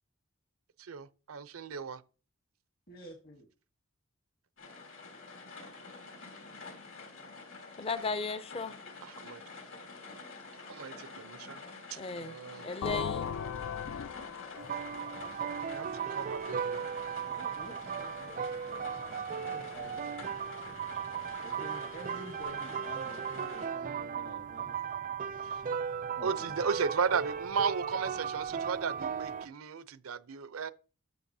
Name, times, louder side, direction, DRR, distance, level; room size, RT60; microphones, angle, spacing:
voice 1, 0.8-2.0 9.0-9.4 10.7-11.6 11.9-13.0 15.7-16.8 25.4-25.6 26.2-30.7, right 6 dB, 85° right, 0.6 m, -35 dB
voice 2, 2.9-3.5 17.3-20.3 21.4-24.8 26.2-26.6, left 1 dB, 45° left, 1.2 m, -50 dB
sound 1, 4.6-23.7, left 4 dB, 70° left, 3.1 m, -48 dB
voice 3, 7.8-8.8 12.0-12.4 12.6-13.3, left 4 dB, 30° left, 0.5 m, -35 dB
sound 2, 12.8-16.5, left 7 dB, 90° left, 0.4 m, -38 dB
sound 3, 14.6-29.5, right 7 dB, 40° right, 0.4 m, -37 dB
13.0 x 6.6 x 2.7 m
head